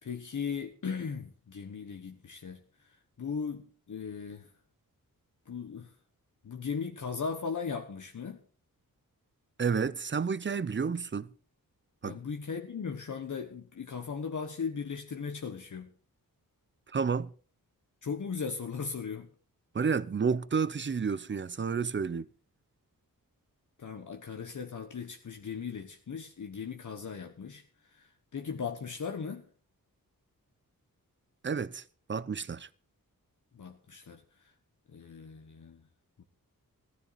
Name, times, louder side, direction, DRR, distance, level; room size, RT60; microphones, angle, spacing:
voice 1, 0.0-2.6 3.2-4.5 5.5-5.9 6.4-8.4 12.0-15.9 18.0-19.3 23.8-27.6 27.9-29.4 33.5-34.2 34.9-35.8 36.2-36.3, left 6 dB, 60° left, 1.2 m, -37 dB
voice 2, 9.6-11.3 12.0-12.2 16.9-17.3 19.7-22.3 31.4-31.8 32.1-32.7, right 5 dB, 35° right, 0.6 m, -30 dB
15.0 x 13.0 x 4.1 m
wide cardioid pair, 90°, 35 cm